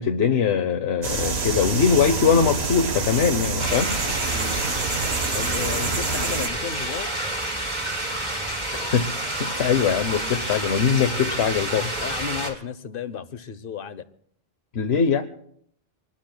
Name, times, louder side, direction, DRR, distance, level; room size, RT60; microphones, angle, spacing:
voice 1, 0.0-3.9 8.7-9.1 9.4-11.9 14.7-15.2, left 6 dB, 85° left, 6 dB, 1.1 m, -22 dB
sound 1, 1.0-6.5, right 4 dB, 85° right, 1.5 m, -27 dB
sound 2, 3.6-12.5, right 1 dB, 45° right, 3.6 m, -29 dB
voice 2, 4.3-4.6 5.3-7.1 12.0-14.0, left 7 dB, 60° left, 14 dB, 0.9 m, -33 dB
25.5 x 19.5 x 2.2 m, 0.68 s
omnidirectional pair, 1.0 m